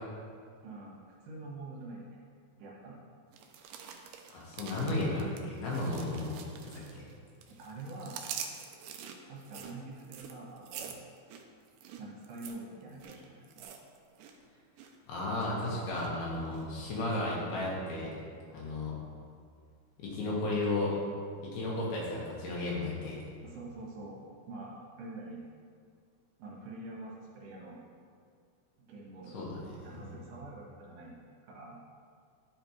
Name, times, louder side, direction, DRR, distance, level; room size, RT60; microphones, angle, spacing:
voice 1, 0.6-2.2 2.6-3.0 7.5-8.3 9.3-11.0 12.0-13.6 23.4-25.4 26.4-27.8 28.8-29.4 29.8-31.1 31.4-31.8, right 2 dB, 70° right, -4 dB, 3.0 m, -46 dB
sound 1, 3.3-7.1 7.4-14.4 14.6-15.0 15.4-16.1 16.5-16.6, right 7 dB, 85° right, 1.8 m, -46 dB
voice 2, 4.3-6.4 6.6-7.0 15.1-18.1 18.5-18.9 20.0-21.1 21.4-23.2 29.3-30.0, left 2 dB, 90° left, -4 dB, 3.4 m, -34 dB
11.0 x 5.0 x 3.1 m, 2.1 s
omnidirectional pair, 4.3 m